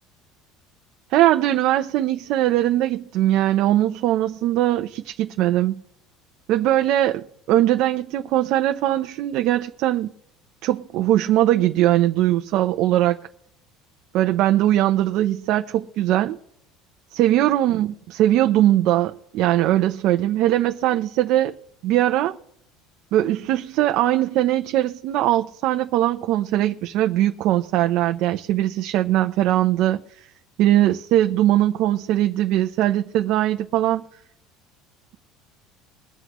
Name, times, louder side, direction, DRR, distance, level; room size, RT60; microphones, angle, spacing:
voice 1, 1.1-5.8 6.5-10.1 10.6-13.2 14.1-16.4 17.1-21.6 21.8-22.4 23.1-30.3 30.6-34.0, right 13 dB, 60° right, 0.6 m, -20 dB
22.0 x 7.8 x 3.1 m
cardioid pair, 140°, 0 cm